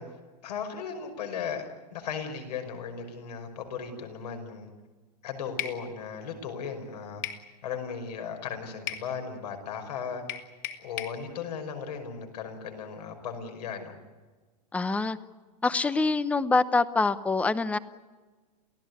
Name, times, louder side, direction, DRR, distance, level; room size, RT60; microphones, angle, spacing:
voice 1, 0.0-4.7 5.2-7.2 7.6-10.2 10.8-14.0, left 6 dB, 75° left, 5 dB, 5.6 m, -36 dB
sound 1, 5.6-5.8 7.2-7.5 8.9-9.1 10.3-11.2, left 11 dB, 35° left, 2.4 m, -35 dB
voice 2, 14.7-15.2 15.6-17.8, left 3 dB, 5° left, 15 dB, 0.7 m, -25 dB
30.0 x 15.5 x 9.7 m, 1.4 s
supercardioid pair, 150°, 21 cm